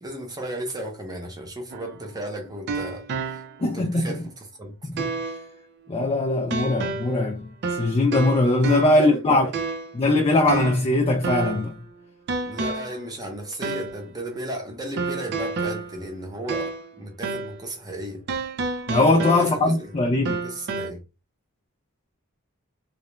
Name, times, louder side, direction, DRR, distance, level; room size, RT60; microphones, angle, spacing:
voice 1, 0.0-5.0 8.9-9.5 12.4-18.2 19.4-21.0, right 1 dB, 15° right, 0.7 m, -35 dB
sound 1, 1.7-3.8 4.2-4.3 5.0-5.5 6.5-7.3 7.6-9.1 9.5-10.0 10.5-11.8 12.3-13.0 13.6-14.0 15.0-17.0 17.2-17.6 18.3-19.8 20.3-20.9, right 4 dB, 50° right, 0.4 m, -30 dB
voice 2, 3.6-4.2 4.9-5.1 5.9-7.5 7.8-9.5 9.9-11.8 18.9-20.4, left 2 dB, 25° left, 0.3 m, -21 dB
2.3 x 2.1 x 3.0 m
head